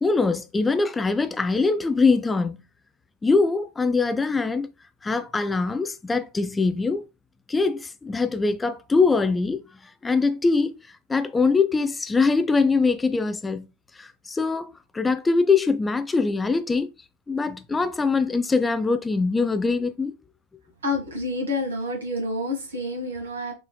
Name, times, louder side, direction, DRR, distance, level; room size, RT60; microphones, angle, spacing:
voice 1, 0.0-2.6 3.2-4.7 5.0-7.0 7.5-9.6 10.0-13.7 14.0-16.9 17.3-20.1, left 4 dB, 10° left, 0.3 m, -23 dB
voice 2, 20.8-23.5, left 2 dB, 70° right, 1.5 m, -28 dB
5.5 x 3.2 x 2.2 m
figure-of-eight pair, 90°, 0 cm